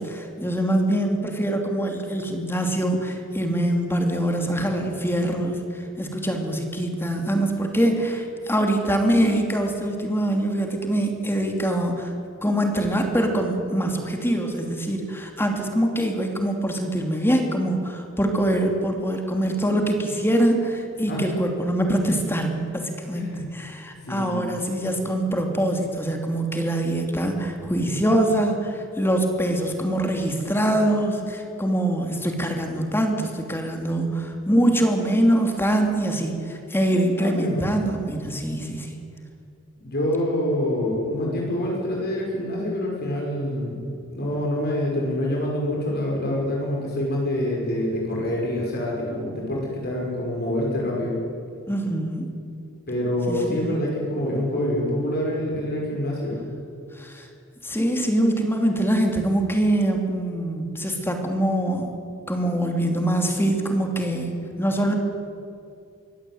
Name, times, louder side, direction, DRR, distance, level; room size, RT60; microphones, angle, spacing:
voice 1, 0.0-12.1 12.4-38.9 51.7-52.5 53.3-53.8 57.0-57.3 57.6-61.9 62.3-65.0, right 1 dB, 10° left, 3 dB, 2.9 m, -24 dB
voice 2, 23.1-23.5 24.0-24.5 37.2-37.7 39.8-51.2 52.9-56.4, left 1 dB, 50° left, -2 dB, 5.6 m, -26 dB
23.5 x 16.5 x 9.4 m, 2.4 s
head